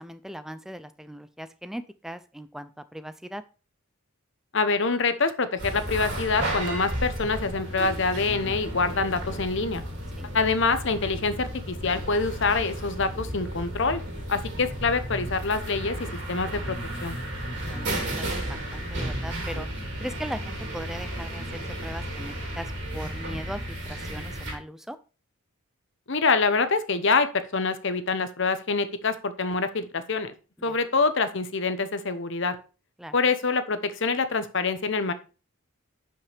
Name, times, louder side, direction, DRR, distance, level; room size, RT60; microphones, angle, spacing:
voice 1, 0.0-3.4 10.2-10.3 17.6-19.7 20.0-25.0 30.7-30.8 33.0-33.2, equal, ahead, 11 dB, 0.4 m, -39 dB
voice 2, 4.5-9.8 10.3-14.0 14.3-16.0 16.3-17.2 26.1-30.3 30.6-32.6 33.1-35.1, left 4 dB, 55° left, 11 dB, 0.9 m, -25 dB
sound 1, 5.6-24.5, right 1 dB, 50° right, 3.2 m, -33 dB
10.5 x 5.6 x 3.4 m, 0.33 s
head